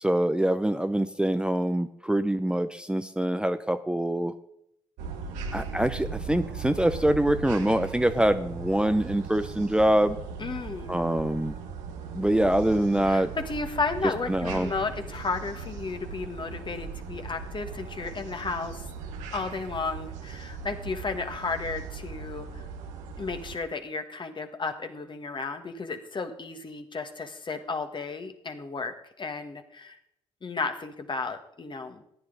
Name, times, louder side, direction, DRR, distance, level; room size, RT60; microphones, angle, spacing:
voice 1, 0.0-4.3 5.5-10.2 10.9-11.5 12.1-13.3 14.3-14.7, right 1 dB, 5° right, 9 dB, 0.7 m, -24 dB
sound 1, 5.0-23.6, right 5 dB, 85° right, 1.1 m, -38 dB
voice 2, 10.4-10.9 13.0-18.9 19.3-22.7 23.2-30.0 30.4-32.0, left 4 dB, 40° left, 7 dB, 1.7 m, -33 dB
14.5 x 9.7 x 4.0 m, 0.75 s
hypercardioid pair, 45°, 12 cm